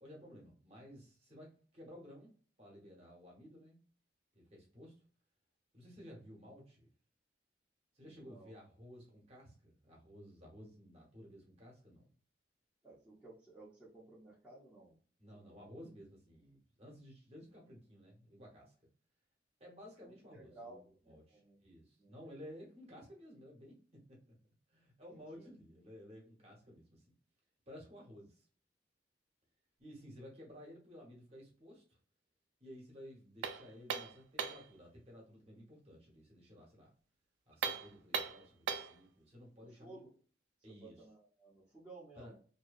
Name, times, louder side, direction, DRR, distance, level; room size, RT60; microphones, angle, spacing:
voice 1, 0.0-2.3 2.6-3.8 4.3-4.9 5.7-6.9 7.9-12.1 15.2-18.7 19.6-24.4 24.7-27.1 27.7-28.4 29.8-32.0 32.6-36.9 37.5-40.0 40.6-41.1 42.1-42.4, equal, 35° right, -2 dB, 0.9 m, -55 dB
voice 2, 8.0-8.5 12.8-15.0 15.3-15.7 20.0-21.6 22.0-22.5 25.1-25.5 39.8-40.1 40.7-42.4, right 2 dB, 5° right, -8 dB, 0.7 m, -56 dB
sound 1, 33.4-34.7 37.5-39.0, right 6 dB, 80° right, 0.4 m, -39 dB
2.7 x 2.2 x 2.3 m, 0.40 s
head